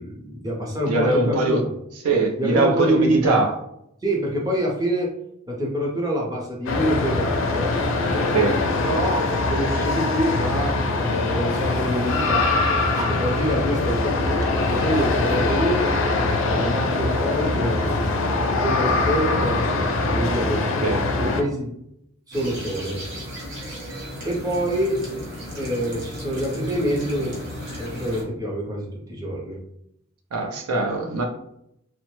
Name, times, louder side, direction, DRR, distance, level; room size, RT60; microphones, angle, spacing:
voice 1, 0.0-1.6 2.4-3.4 4.0-5.1 5.5-7.8 8.8-12.6 13.0-15.9 16.5-18.2 18.6-20.8 21.2-21.7 22.3-23.0 24.2-25.0 25.5-29.6, equal, 15° right, -2 dB, 0.6 m, -26 dB
voice 2, 0.8-1.6 2.0-3.5 8.3-8.6 20.8-21.0 30.3-31.2, right 3 dB, 90° right, 3 dB, 0.6 m, -21 dB
sound 1, 6.7-21.4, left 3 dB, 60° left, 0.4 m, -23 dB
sound 2, 22.3-28.2, equal, 50° right, 1.0 m, -34 dB
2.9 x 2.0 x 3.0 m, 0.76 s
head